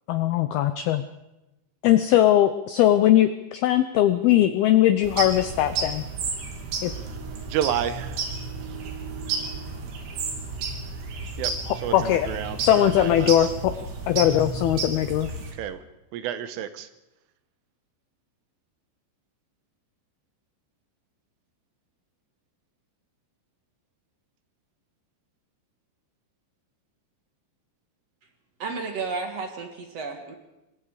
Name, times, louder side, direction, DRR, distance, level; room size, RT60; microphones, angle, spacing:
voice 1, 0.1-1.0 1.8-6.0 6.8-6.9 11.7-12.3 12.6-13.7 14.1-15.3, left 12 dB, 90° left, 11 dB, 2.1 m, -20 dB
sound 1, 5.0-15.5, right 4 dB, 70° right, 4.9 m, -32 dB
voice 2, 7.5-8.2 11.4-11.5 11.8-13.3 15.6-15.8 16.1-16.9, right 10 dB, 90° right, 11 dB, 3.7 m, -30 dB
voice 3, 28.6-30.3, right 4 dB, 55° right, 5 dB, 1.9 m, -32 dB
26.0 x 21.5 x 5.0 m, 0.97 s
omnidirectional pair, 5.6 m